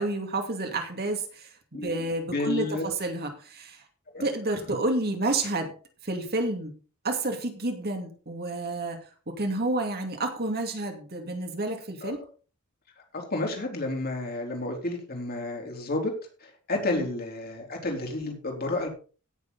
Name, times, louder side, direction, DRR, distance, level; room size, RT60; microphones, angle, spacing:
voice 1, 0.0-3.8 4.2-5.7 6.0-6.7 7.0-9.0 9.3-12.2 16.9-17.1, right 2 dB, 45° right, 4 dB, 2.5 m, -30 dB
voice 2, 1.7-2.9 4.1-4.2 12.0-12.2 13.1-16.1 16.4-18.9, left 2 dB, 45° left, 2 dB, 3.9 m, -31 dB
16.5 x 7.0 x 4.1 m, 0.37 s
head